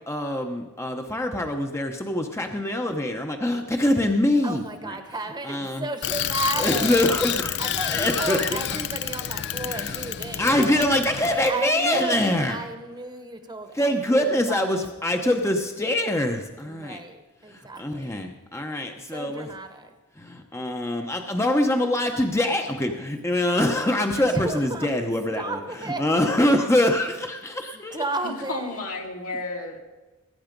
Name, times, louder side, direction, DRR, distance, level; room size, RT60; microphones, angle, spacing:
voice 1, 0.1-4.9 5.4-5.9 6.6-7.6 7.9-8.6 9.6-10.1 10.4-12.6 13.7-17.0 17.5-19.5 20.2-28.0, left 1 dB, 10° left, 4 dB, 0.9 m, -24 dB
voice 2, 4.4-7.0 7.6-10.8 11.5-14.9 16.6-18.3 19.1-19.9 24.1-26.1 27.9-28.8, right 2 dB, 20° right, 7 dB, 1.2 m, -33 dB
Bicycle, 6.0-11.5, left 10 dB, 50° left, 0.5 m, -29 dB
voice 3, 28.2-29.8, left 2 dB, 75° left, 0 dB, 2.8 m, -32 dB
20.0 x 9.4 x 5.2 m, 1.2 s
head